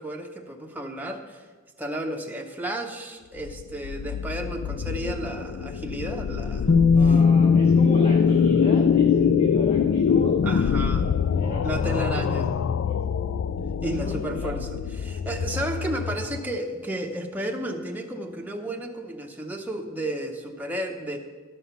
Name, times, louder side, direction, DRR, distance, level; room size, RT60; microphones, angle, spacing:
voice 1, 0.0-1.4 1.8-6.7 7.0-7.2 10.4-11.1 11.6-12.5 13.8-14.7 15.0-21.2, right 1 dB, 10° right, 1 dB, 0.7 m, -32 dB
sound 1, 3.4-16.6, left 7 dB, 65° left, 0.3 m, -25 dB
Bass guitar, 6.7-12.7, left 5 dB, 45° left, 0.7 m, -22 dB
voice 2, 6.9-12.4 12.9-13.0 13.8-14.5 15.5-15.6, left 1 dB, 30° left, -2 dB, 1.1 m, -34 dB
12.5 x 5.5 x 5.8 m, 1.4 s
head